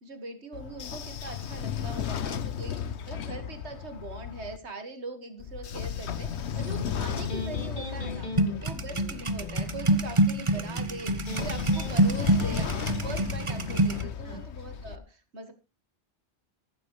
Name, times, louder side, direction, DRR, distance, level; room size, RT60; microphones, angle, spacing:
voice 1, 0.0-8.3 8.6-15.5, right 3 dB, 70° right, 7 dB, 2.2 m, -41 dB
Train / Sliding door, 0.5-4.6 5.4-10.2 11.1-15.0, left 8 dB, 75° left, 1.1 m, -35 dB
voice 2, 1.8-2.2 6.4-6.6 8.4-8.6 11.4-11.6 14.2-14.5, right 3 dB, 25° left, -5 dB, 6.1 m, -47 dB
Electric guitar, 6.6-13.6, left 2 dB, 45° left, 2.5 m, -41 dB
sound 1, 8.4-14.0, right 1 dB, 30° right, 0.9 m, -26 dB
14.5 x 12.0 x 3.2 m, 0.30 s
omnidirectional pair, 1.2 m